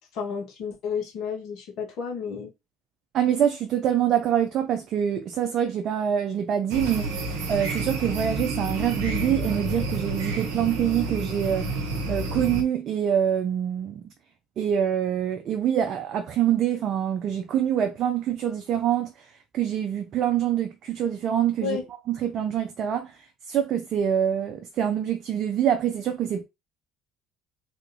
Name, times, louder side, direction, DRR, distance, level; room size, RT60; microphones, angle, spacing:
voice 1, 0.1-2.5 21.6-21.8, left 6 dB, 65° left, 1.2 m, -31 dB
voice 2, 3.1-7.1 7.5-11.7 12.1-14.0 14.6-19.3 19.5-21.8 22.1-23.1 23.5-26.4, right 9 dB, 55° right, 0.5 m, -25 dB
sound 1, 6.7-12.6, right 2 dB, 75° right, 0.8 m, -29 dB
3.4 x 2.7 x 2.6 m
hypercardioid pair, 60°, 0 cm